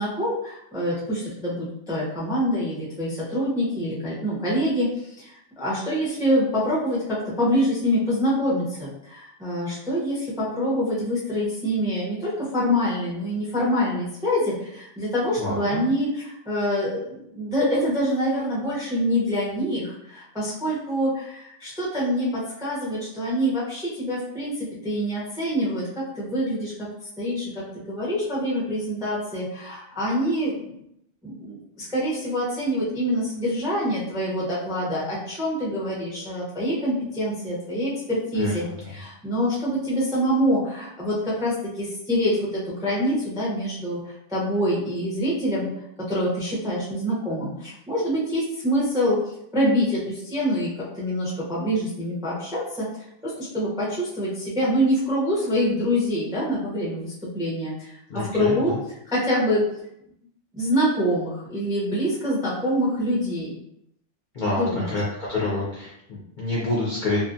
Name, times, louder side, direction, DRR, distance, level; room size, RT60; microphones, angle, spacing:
voice 1, 0.0-26.9 27.2-30.8 31.2-45.7 46.1-49.2 49.5-52.9 53.2-58.7 59.1-59.7 60.5-63.6 64.4-64.9, equal, 5° right, -7 dB, 0.4 m, -25 dB
voice 2, 15.4-15.8 38.4-39.0 58.1-58.8 64.3-67.2, left 2 dB, 55° left, -7 dB, 0.5 m, -28 dB
2.5 x 2.4 x 2.5 m, 0.76 s
omnidirectional pair, 1.5 m